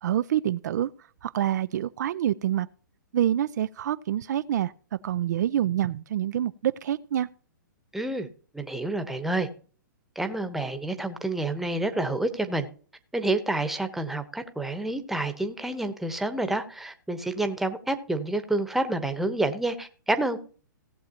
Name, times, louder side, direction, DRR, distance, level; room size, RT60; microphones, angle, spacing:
voice 1, 0.0-0.9 1.2-2.7 3.1-4.7 5.0-7.3, right 11 dB, 60° right, 0.4 m, -26 dB
voice 2, 7.9-8.3 8.5-9.5 10.2-12.7 13.1-20.4, right 2 dB, ahead, 1.0 m, -28 dB
17.5 x 7.3 x 2.9 m
hypercardioid pair, 130°, 11 cm